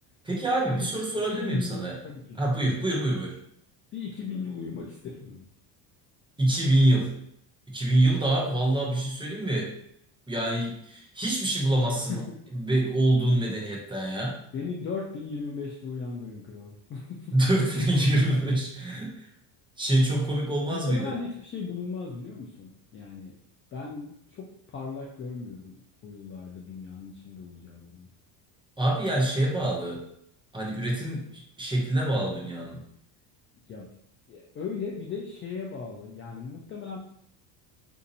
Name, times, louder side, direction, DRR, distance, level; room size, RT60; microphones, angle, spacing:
voice 1, 0.2-1.9 2.4-3.4 6.4-7.1 7.7-9.7 10.3-12.2 12.5-14.4 17.3-19.3 19.8-21.1 28.8-30.0 30.5-31.2 31.6-32.8, right 1 dB, 10° right, -2 dB, 0.6 m, -25 dB
voice 2, 1.2-2.8 3.9-5.4 12.1-12.3 14.5-17.3 18.5-18.6 20.5-23.4 23.7-28.1 33.7-33.9 34.3-37.0, left 5 dB, 30° left, -2 dB, 0.3 m, -37 dB
2.7 x 2.5 x 4.0 m, 0.72 s
cardioid pair, 135°, 45 cm